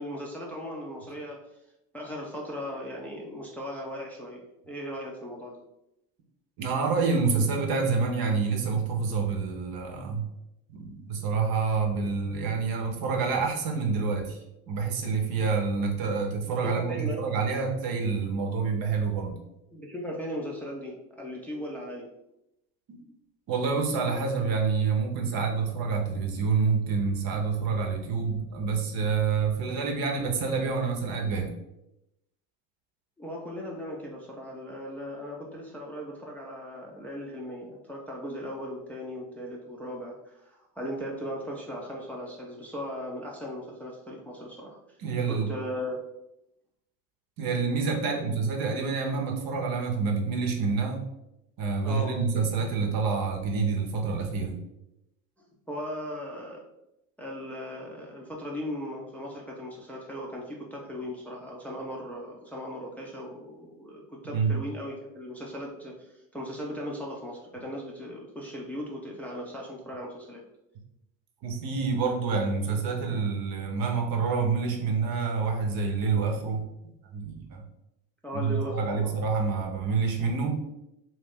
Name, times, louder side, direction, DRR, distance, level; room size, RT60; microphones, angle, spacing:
voice 1, 0.0-1.4 1.9-5.6 16.6-17.2 19.7-22.1 33.2-45.0 45.3-46.0 51.8-52.2 55.4-56.6 57.2-70.4 78.2-79.2, equal, 5° left, -2 dB, 0.6 m, -38 dB
voice 2, 6.6-10.3 10.7-14.4 14.7-19.3 22.9-23.0 23.5-31.5 45.0-45.5 47.4-51.0 51.6-54.6 64.3-64.6 71.4-76.6 77.1-77.6 78.3-80.6, right 5 dB, 50° right, 2 dB, 0.9 m, -27 dB
2.9 x 2.7 x 3.6 m, 0.88 s
hypercardioid pair, 75°, 45 cm